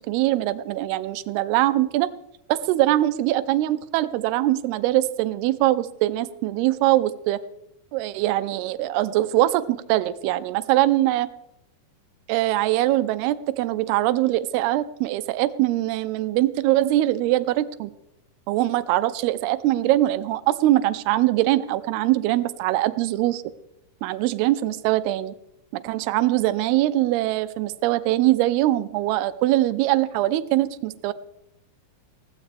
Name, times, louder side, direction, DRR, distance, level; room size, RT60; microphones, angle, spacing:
voice 1, 0.1-2.1 2.5-7.4 7.9-11.3 12.3-17.9 18.5-23.4 24.0-25.3 25.7-31.1, right 15 dB, 85° right, 14 dB, 2.7 m, -22 dB
21.0 x 15.0 x 3.4 m, 0.82 s
omnidirectional pair, 4.6 m